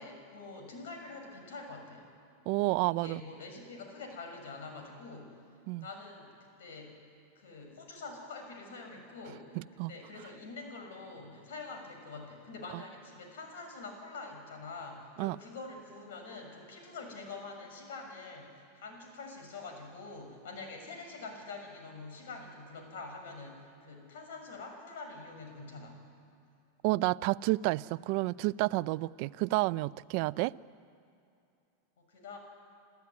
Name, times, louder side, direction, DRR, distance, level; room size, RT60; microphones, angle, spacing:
voice 1, 0.0-2.0 2.9-5.4 5.8-7.0 7.3-26.0 32.0-32.4, left 3 dB, 80° left, 6.5 m, -45 dB
voice 2, 2.5-3.2 5.7-5.8 9.8-9.9 12.7-12.8 15.2-15.4 26.8-30.5, right 20 dB, 55° right, 0.5 m, -30 dB
29.5 x 14.0 x 9.7 m
supercardioid pair, 125°, 0 cm